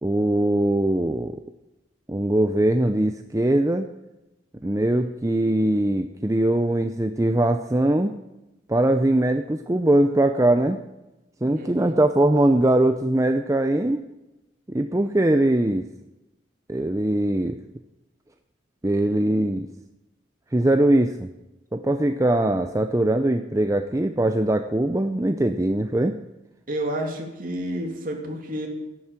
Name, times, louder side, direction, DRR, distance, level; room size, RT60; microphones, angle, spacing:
voice 1, 0.0-1.4 2.1-3.9 4.6-8.1 8.7-10.8 11.4-14.1 14.7-15.8 16.7-17.6 18.8-19.7 20.5-21.3 21.7-26.1, right 1 dB, 15° right, 7 dB, 0.5 m, -21 dB
voice 2, 11.6-12.0 26.7-28.7, right 1 dB, 50° right, 1 dB, 2.9 m, -30 dB
14.0 x 11.0 x 7.4 m, 0.97 s
head